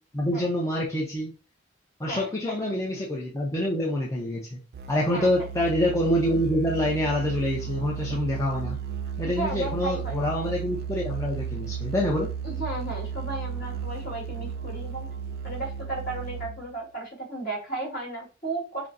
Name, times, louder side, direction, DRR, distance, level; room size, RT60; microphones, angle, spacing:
voice 1, 0.1-1.3 2.0-4.6 4.9-8.8 9.2-12.3, left 1 dB, 15° left, -4 dB, 0.6 m, -26 dB
voice 2, 2.1-2.6 5.1-5.3 9.3-10.2 12.4-15.1 15.4-18.9, right 2 dB, 50° left, -2 dB, 2.0 m, -34 dB
Musical instrument, 4.7-16.8, right 7 dB, 55° right, 0.3 m, -34 dB
6.0 x 2.0 x 2.6 m, 0.33 s
head